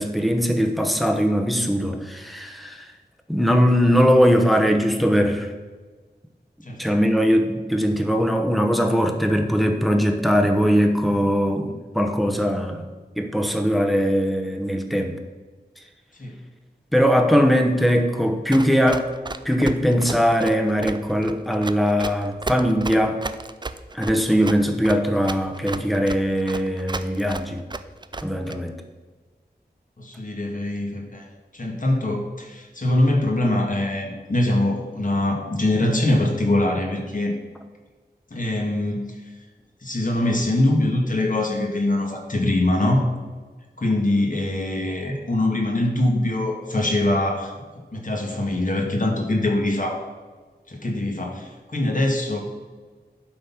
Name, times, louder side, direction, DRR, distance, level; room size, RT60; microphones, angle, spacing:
voice 1, 0.0-2.9 3.3-5.5 6.8-12.9 13.2-15.1 16.9-19.1 19.4-23.2 23.9-27.6 28.2-28.7, equal, ahead, 4 dB, 1.0 m, -20 dB
Run, 18.5-28.6, right 3 dB, 25° right, 0.4 m, -33 dB
voice 2, 30.0-31.3 31.5-37.4 38.3-39.0 39.8-43.0 43.8-47.5 47.9-50.0 50.7-52.4, left 1 dB, 50° left, 0 dB, 1.8 m, -23 dB
11.5 x 4.1 x 5.8 m, 1.4 s
wide cardioid pair, 70°, 17 cm